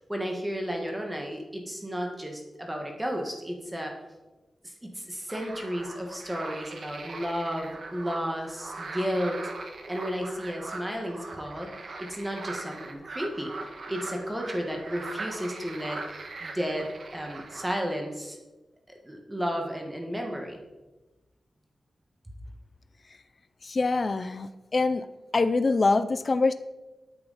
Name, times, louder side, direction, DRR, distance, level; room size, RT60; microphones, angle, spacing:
voice 1, 0.1-3.9 4.6-9.4 9.9-11.7 12.0-13.5 13.8-16.0 16.4-18.4 19.0-20.6, equal, 10° right, 1 dB, 1.5 m, -33 dB
sound 1, 5.3-17.7, right 3 dB, 55° right, 1.4 m, -40 dB
voice 2, 23.6-26.5, left 3 dB, 35° left, 11 dB, 0.4 m, -25 dB
12.5 x 9.1 x 4.1 m, 1.1 s
wide cardioid pair, 180°, 0 cm